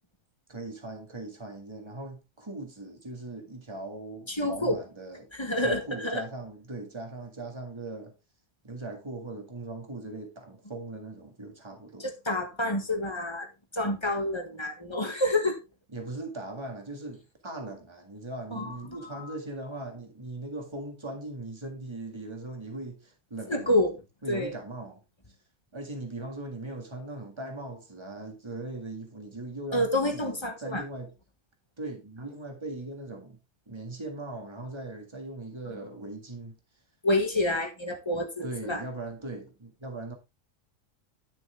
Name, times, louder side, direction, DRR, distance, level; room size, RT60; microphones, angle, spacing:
voice 1, 0.5-5.3 5.6-8.1 8.6-12.1 15.9-23.7 24.2-25.0 25.7-31.1 31.8-33.4 33.7-36.6 38.4-40.1, right 2 dB, 20° right, 2.0 m, -39 dB
voice 2, 4.3-4.8 5.4-6.2 12.0-13.5 13.7-15.6 18.5-18.7 19.1-19.3 23.5-24.0 24.3-24.5 29.7-30.8 37.0-38.8, left 1 dB, 20° left, 1.5 m, -28 dB
11.0 x 6.1 x 3.4 m
omnidirectional pair, 1.3 m